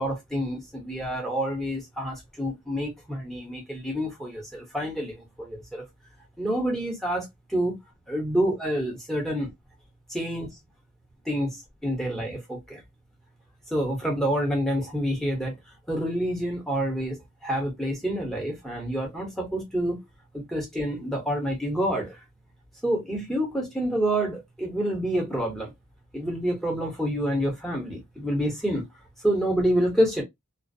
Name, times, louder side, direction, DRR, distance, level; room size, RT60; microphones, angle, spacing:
voice 1, 0.0-5.8 6.4-7.7 8.1-9.5 10.1-10.5 11.3-12.8 13.7-15.5 15.9-20.0 20.3-22.2 22.8-25.7 26.1-28.9 29.2-30.2, equal, ahead, 0.8 m, -28 dB
2.4 x 2.1 x 2.5 m
head